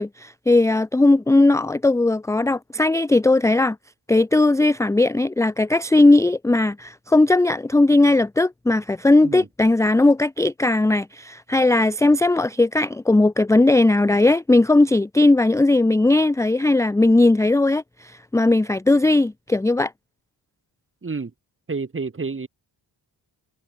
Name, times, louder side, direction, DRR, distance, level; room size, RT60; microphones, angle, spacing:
voice 1, 0.0-3.8 4.1-19.9, left 2 dB, 5° left, 0.5 m, -18 dB
voice 2, 21.7-22.5, right 4 dB, 30° right, 3.8 m, -29 dB
wide cardioid pair, 170°, 43 cm